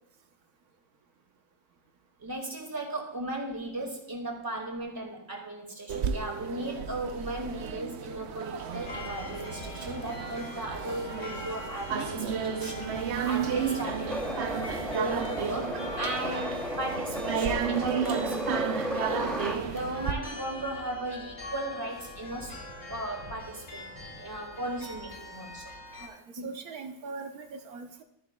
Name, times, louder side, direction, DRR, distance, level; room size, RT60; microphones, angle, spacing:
voice 1, 2.2-14.4 14.9-19.2 19.7-22.5 22.9-25.7 26.4-26.5, right 1 dB, 15° right, 1 dB, 1.7 m, -36 dB
sound 1, 5.9-20.1, right 7 dB, 60° right, 0.8 m, -33 dB
sound 2, 8.7-26.1, left 2 dB, 30° left, 2.0 m, -42 dB
sound 3, 13.8-19.6, left 1 dB, ahead, 0.4 m, -34 dB
voice 2, 26.0-28.0, right 4 dB, 80° right, 5 dB, 1.4 m, -41 dB
13.0 x 10.0 x 2.3 m, 0.77 s
omnidirectional pair, 1.6 m